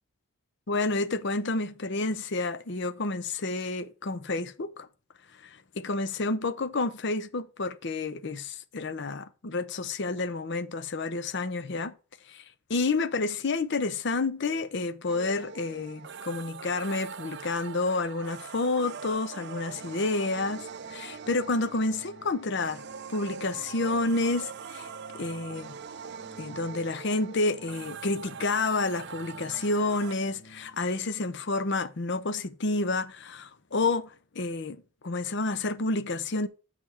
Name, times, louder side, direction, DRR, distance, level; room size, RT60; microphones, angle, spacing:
voice 1, 0.7-4.9 5.4-11.9 12.3-12.4 12.7-22.8 23.1-24.9 25.1-25.7 26.4-36.5, left 3 dB, 55° left, 0.6 m, -30 dB
sound 1, 15.1-30.2, right 6 dB, 50° right, 0.5 m, -42 dB
Organ, 20.7-31.0, right 1 dB, 30° left, 3.5 m, -55 dB
6.8 x 5.8 x 4.3 m
head